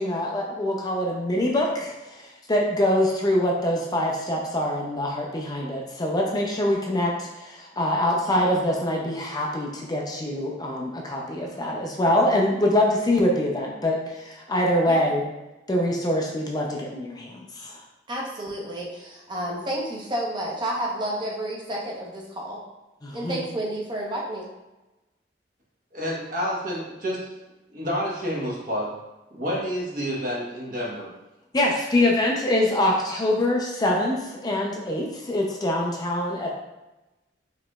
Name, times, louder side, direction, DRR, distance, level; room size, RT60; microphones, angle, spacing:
voice 1, 0.0-15.3 15.7-17.8 23.0-23.4 31.5-36.5, left 1 dB, 25° left, -1 dB, 0.4 m, -24 dB
voice 2, 18.1-22.6 23.1-24.5, right 1 dB, 25° right, -3 dB, 0.8 m, -30 dB
voice 3, 25.9-27.3 27.7-28.9 29.3-31.1, equal, 50° right, -4 dB, 1.1 m, -29 dB
4.9 x 3.0 x 2.3 m, 1.0 s
head